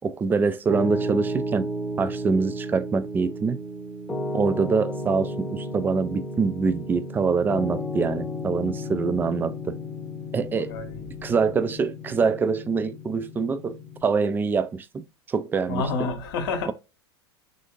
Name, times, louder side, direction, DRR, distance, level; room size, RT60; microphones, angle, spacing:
voice 1, 0.0-1.7 2.0-3.6 4.3-9.8 10.3-10.7 11.2-16.1, right 5 dB, 15° right, 0.3 m, -25 dB
Piano, 0.7-14.0, equal, 5° left, 0.8 m, -33 dB
voice 2, 10.6-11.0 15.7-16.7, left 4 dB, 55° left, 0.9 m, -29 dB
3.4 x 2.6 x 2.3 m
figure-of-eight pair, 85°, 14 cm